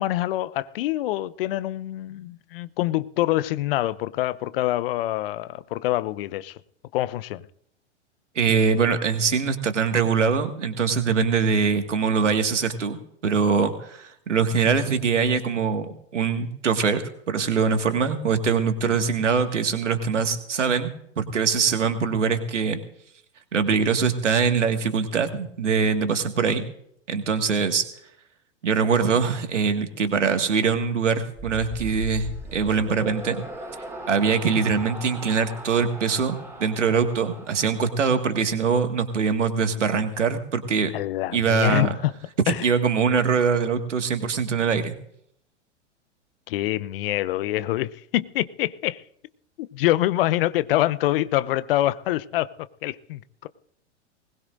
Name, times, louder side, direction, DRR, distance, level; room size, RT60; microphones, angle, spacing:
voice 1, 0.0-6.6 6.9-7.5 18.8-19.0 40.9-42.1 42.5-42.7 46.5-49.0 49.6-52.5 52.8-53.5, left 15 dB, 50° left, 0.8 m, -25 dB
voice 2, 8.4-13.0 13.2-20.9 21.2-22.8 23.5-26.6 27.1-27.8 28.6-33.4 34.1-40.9 41.3-41.9 42.5-45.0, right 5 dB, 80° right, 2.0 m, -23 dB
sound 1, 31.4-38.7, right 2 dB, 5° right, 4.2 m, -39 dB
21.0 x 19.5 x 2.6 m
figure-of-eight pair, 100°, 36 cm